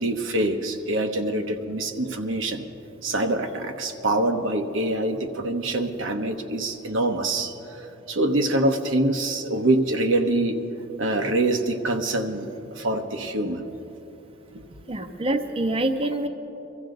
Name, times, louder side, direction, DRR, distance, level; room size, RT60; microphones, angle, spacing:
voice 1, 0.0-2.6 3.0-7.5 7.8-10.6 11.0-13.6, right 1 dB, 85° right, 4 dB, 1.1 m, -25 dB
voice 2, 14.9-16.3, right 1 dB, 30° right, 6 dB, 0.7 m, -25 dB
23.5 x 14.5 x 3.9 m, 3.0 s
head